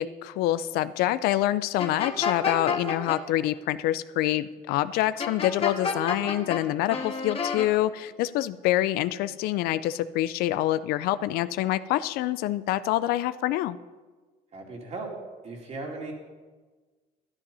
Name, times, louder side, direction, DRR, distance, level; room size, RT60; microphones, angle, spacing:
voice 1, 0.0-13.8, left 14 dB, 85° left, 16 dB, 0.5 m, -26 dB
sound 1, 1.8-3.2 5.2-6.6 6.9-7.7, left 5 dB, 40° left, 1.6 m, -29 dB
voice 2, 14.5-15.1 15.4-16.1, right 3 dB, 45° right, 0 dB, 2.9 m, -37 dB
12.5 x 9.8 x 5.5 m, 1.3 s
cardioid pair, 100°, 15 cm